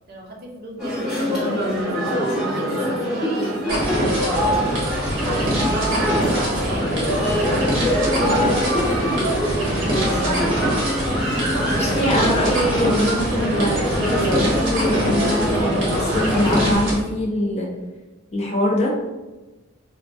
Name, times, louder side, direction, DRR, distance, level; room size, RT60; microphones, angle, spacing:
voice 1, 0.1-2.1 2.5-4.6 5.2-7.2 8.4-10.5, right 1 dB, 45° right, -1 dB, 0.6 m, -34 dB
sound 1, 0.8-16.7, equal, ahead, 1.0 m, -24 dB
sound 2, 3.7-17.0, right 1 dB, 60° right, 1.1 m, -24 dB
voice 2, 8.2-8.5 11.7-17.7 18.3-19.0, left 1 dB, 30° left, -2 dB, 0.5 m, -23 dB
4.2 x 2.1 x 2.5 m, 1.1 s
head